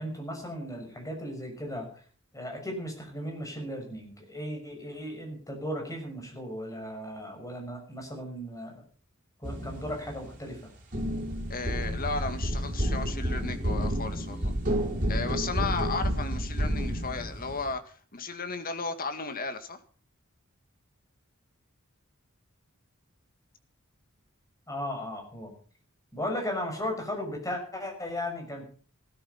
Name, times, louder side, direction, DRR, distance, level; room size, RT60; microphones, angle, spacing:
voice 1, 0.0-1.9 2.3-8.8 9.4-10.7 24.7-25.5 26.1-28.7, left 1 dB, 15° left, 2 dB, 6.3 m, -36 dB
sound 1, 9.4-10.5 10.9-17.7, equal, 40° right, 5.3 m, -30 dB
voice 2, 11.5-14.6 15.1-19.8, left 4 dB, 45° left, 9 dB, 1.9 m, -34 dB
16.0 x 13.0 x 5.7 m, 0.43 s
head